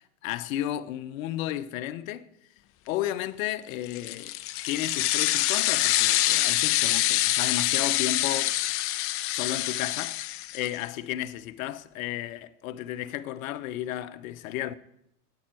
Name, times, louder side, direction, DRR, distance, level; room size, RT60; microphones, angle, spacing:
voice 1, 0.0-2.3 2.9-4.3 4.7-8.6 9.2-14.7, left 13 dB, 60° left, 1.0 m, -33 dB
sound 1, 3.9-10.8, left 15 dB, 30° left, 0.6 m, -26 dB
9.2 x 8.8 x 9.1 m
hypercardioid pair, 115°, 45 cm